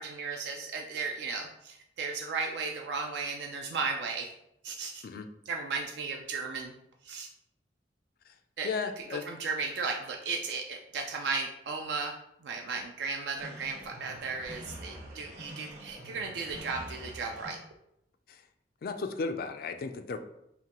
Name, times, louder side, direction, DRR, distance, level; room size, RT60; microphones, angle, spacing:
voice 1, 0.0-4.3 4.6-5.0 5.5-6.7 7.0-7.3 8.6-8.7 9.0-12.1 12.4-17.6, right 4 dB, 75° right, 2 dB, 0.4 m, -35 dB
voice 2, 8.6-9.2 18.3-18.4 18.8-20.2, left 4 dB, 55° left, 7 dB, 0.3 m, -34 dB
sound 1, 13.4-17.5, right 1 dB, 40° right, 0.9 m, -46 dB
5.7 x 2.2 x 2.9 m, 0.80 s
head